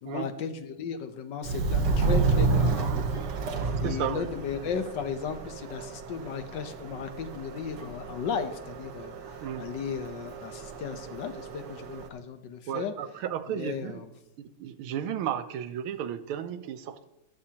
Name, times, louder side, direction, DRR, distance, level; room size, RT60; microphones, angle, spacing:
voice 1, 0.0-9.1 9.6-12.9 13.5-14.1, left 6 dB, 65° left, 8 dB, 1.4 m, -35 dB
Subway metro underground, 1.4-12.1, right 4 dB, 60° right, 1.6 m, -31 dB
voice 2, 3.8-4.3 9.4-9.7 12.7-14.0 14.6-17.0, right 9 dB, 85° right, 11 dB, 1.6 m, -33 dB
13.5 x 12.0 x 2.9 m, 0.98 s
omnidirectional pair, 2.3 m